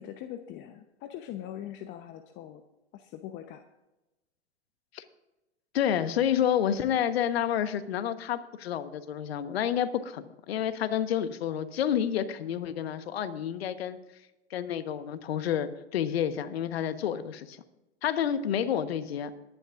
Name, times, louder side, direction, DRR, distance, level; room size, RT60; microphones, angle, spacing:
voice 1, 0.0-2.6 2.9-3.6, left 11 dB, 35° left, 7 dB, 0.9 m, -42 dB
voice 2, 5.7-14.0 14.5-17.6 18.0-19.3, left 9 dB, 65° left, 11 dB, 1.3 m, -29 dB
21.0 x 10.5 x 2.5 m, 1.0 s
hypercardioid pair, 110°, 33 cm